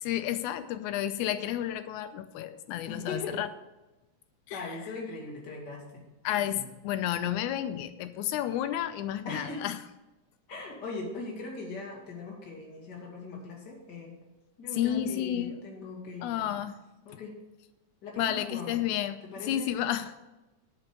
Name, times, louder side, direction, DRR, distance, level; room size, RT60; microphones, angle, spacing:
voice 1, 0.0-3.5 4.5-4.6 6.2-9.8 14.8-15.6 16.2-16.7 18.2-20.3, left 11 dB, 90° left, 11 dB, 2.0 m, -31 dB
voice 2, 2.9-3.4 4.5-6.0 6.3-6.7 9.2-9.6 10.5-14.1 14.6-16.6 17.1-17.4 18.0-18.8 19.2-19.7, left 3 dB, 35° left, -2 dB, 2.6 m, -40 dB
9.8 x 6.2 x 6.8 m, 1.0 s
omnidirectional pair, 3.4 m